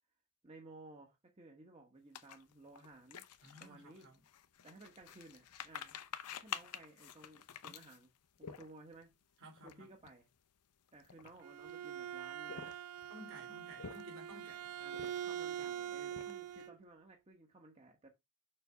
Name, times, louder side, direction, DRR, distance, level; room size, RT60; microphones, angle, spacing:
voice 1, 0.4-3.2 3.6-4.1 4.6-6.0 6.4-8.1 8.4-9.1 9.6-10.3 10.9-12.8 14.8-18.1, right 2 dB, 30° right, 1.2 m, -57 dB
sound 1, 2.1-9.0 9.6-9.7 10.0-10.2 10.9-11.7 12.3-13.1 13.6-14.3 14.9-15.5 15.8-16.6, left 8 dB, 85° left, 0.7 m, -49 dB
voice 2, 3.4-4.2 9.4-9.9 13.0-14.8, equal, 60° right, 3.2 m, -55 dB
Bowed string instrument, 11.2-16.8, right 9 dB, 80° right, 0.5 m, -44 dB
6.7 x 3.5 x 5.7 m
head